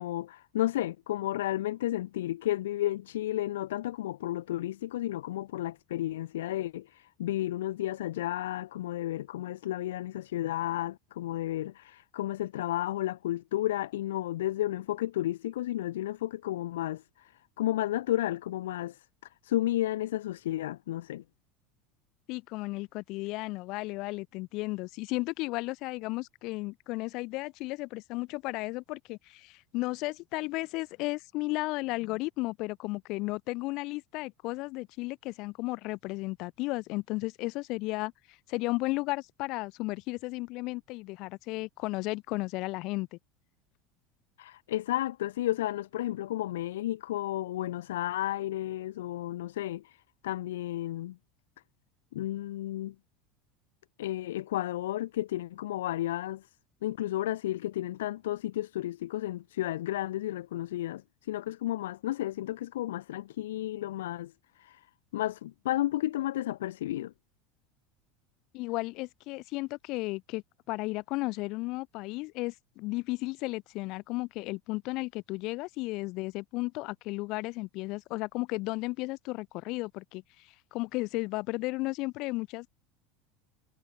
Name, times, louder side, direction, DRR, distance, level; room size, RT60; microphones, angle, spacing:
voice 1, 0.0-17.3 17.6-19.0 19.4-21.2 44.4-50.0 50.2-51.2 52.1-53.0 54.0-56.5 56.8-61.0 61.3-64.3 64.6-64.8 65.1-67.1, left 14 dB, 90° left, 1.8 m, -32 dB
voice 2, 22.3-38.1 38.5-43.2 68.5-82.7, left 22 dB, 60° left, 2.0 m, -34 dB
supercardioid pair, 105°, 0 cm